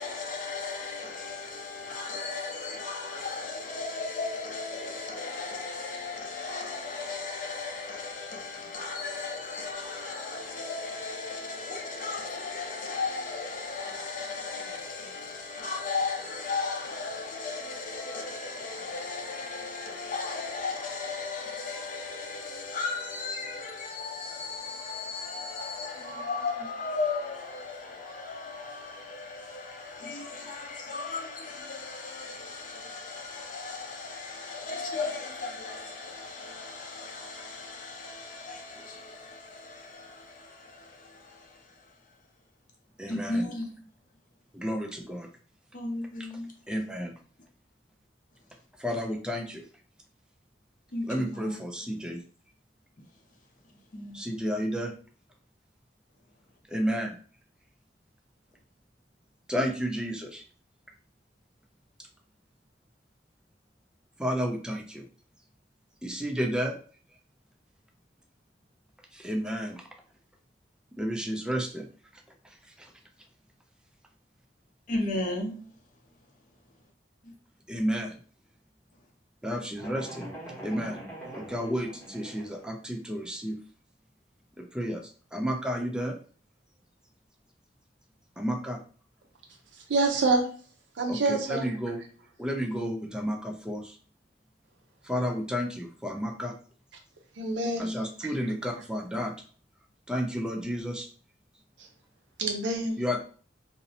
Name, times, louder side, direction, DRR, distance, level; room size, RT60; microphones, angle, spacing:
voice 1, 0.0-41.8 43.1-43.8 45.7-46.5 50.9-51.6 53.9-54.2 74.9-75.6 77.2-77.3, left 3 dB, 45° left, 0.6 m, -36 dB
voice 2, 43.0-43.5 44.5-45.3 46.7-47.1 48.8-49.7 51.1-52.2 54.1-54.9 56.7-57.2 59.5-60.4 64.2-65.0 66.0-66.8 69.1-69.8 71.0-71.9 72.1-72.9 77.7-78.2 79.4-80.3 80.6-81.0 81.3-83.6 84.6-86.2 88.4-88.8 91.1-92.0 92.4-94.0 95.0-96.5 97.8-99.3 100.1-101.1 103.0-103.2, equal, 5° right, 0.3 m, -31 dB
sound 1, 79.8-82.7, right 1 dB, 10° left, 0.8 m, -43 dB
voice 3, 89.9-90.4 91.0-91.7 97.4-98.0 102.4-103.0, right 3 dB, 90° right, 0.6 m, -26 dB
2.6 x 2.0 x 2.7 m
head